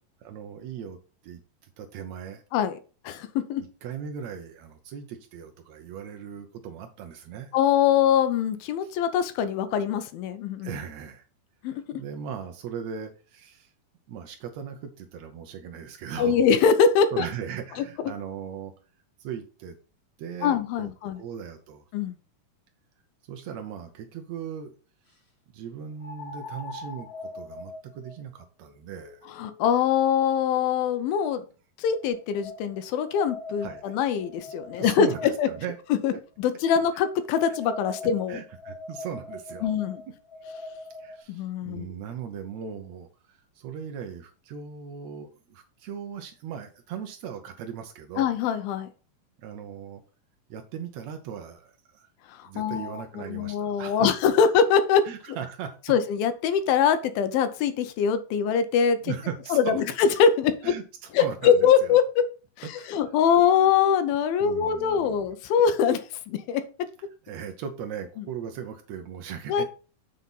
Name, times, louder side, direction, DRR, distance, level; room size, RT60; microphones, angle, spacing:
voice 1, 0.2-1.0 1.2-2.4 3.8-7.5 8.8-8.9 10.6-11.2 11.7-13.7 14.1-16.5 17.1-18.7 19.2-19.8 20.2-20.9 21.2-21.8 23.3-24.7 25.5-29.3 33.6-34.0 34.8-35.8 37.5-37.6 38.3-39.7 41.0-48.3 49.4-50.0 50.5-52.1 52.4-54.1 55.1-55.8 59.0-59.8 60.6-62.0 62.7-63.0 64.4-65.2 67.2-69.6, right 8 dB, 90° right, 5 dB, 1.5 m, -38 dB
voice 2, 3.1-3.6 7.5-10.7 11.6-11.8 16.2-17.3 20.4-21.2 21.9-22.2 29.3-31.4 31.8-35.1 35.4-35.5 36.0-36.1 36.4-38.4 39.6-40.0 41.3-41.9 48.2-48.9 52.4-55.0 55.9-59.1 59.5-60.7 61.1-62.2 62.6-66.6 69.5-69.6, left 7 dB, 80° left, 10 dB, 2.5 m, -23 dB
sound 1, 23.4-23.5 26.0-31.2 31.9-35.6 36.6-41.2, left 2 dB, 35° left, 1.4 m, -42 dB
7.6 x 4.0 x 5.4 m, 0.36 s
omnidirectional pair, 4.3 m